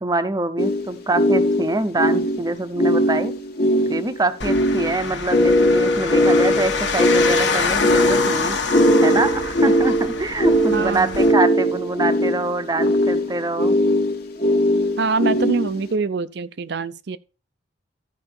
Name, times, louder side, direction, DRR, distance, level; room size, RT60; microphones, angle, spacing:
voice 1, 0.0-3.3 3.9-8.6 9.0-13.8, right 2 dB, 20° right, 0.7 m, -24 dB
sound 1, 0.6-15.9, equal, 55° left, 1.4 m, -20 dB
sound 2, 4.4-11.3, left 4 dB, 70° left, 1.4 m, -26 dB
voice 2, 10.7-11.2 15.0-17.2, right 4 dB, 60° right, 0.5 m, -24 dB
13.0 x 4.9 x 4.3 m
head